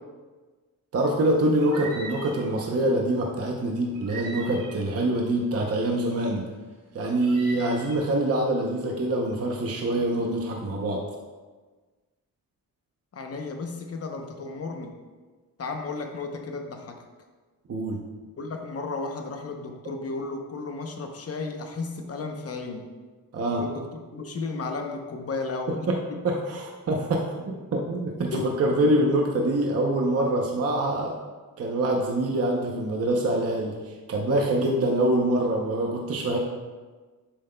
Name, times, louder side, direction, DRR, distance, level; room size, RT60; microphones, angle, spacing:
voice 1, 0.9-6.5 6.9-11.0 17.7-18.0 23.3-23.6 25.9-26.0 26.2-31.1 31.6-36.4, right 1 dB, 40° right, 0 dB, 0.7 m, -25 dB
sound 1, 1.6-2.5 3.9-5.0 7.2-8.0, right 3 dB, 60° right, 2.3 m, -40 dB
voice 2, 13.1-15.0 15.6-17.0 18.4-22.9 23.6-25.9 28.3-28.5, left 3 dB, 40° left, 4 dB, 0.8 m, -34 dB
10.5 x 7.7 x 2.2 m, 1.4 s
wide cardioid pair, 180°, 36 cm